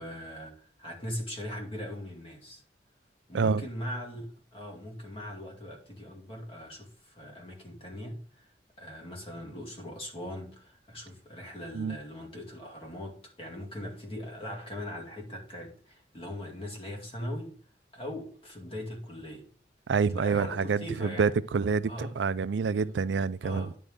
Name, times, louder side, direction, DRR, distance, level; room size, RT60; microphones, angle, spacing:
voice 1, 0.0-2.6 3.3-4.3 4.5-8.5 8.8-17.6 17.9-19.5 20.1-21.3 21.9-22.2 22.8-22.9 23.4-23.8, left 1 dB, 30° left, 2.3 m, -40 dB
voice 2, 3.3-3.7 11.7-12.0 19.9-23.7, right 5 dB, 85° right, 0.4 m, -27 dB
10.0 x 3.7 x 6.4 m
head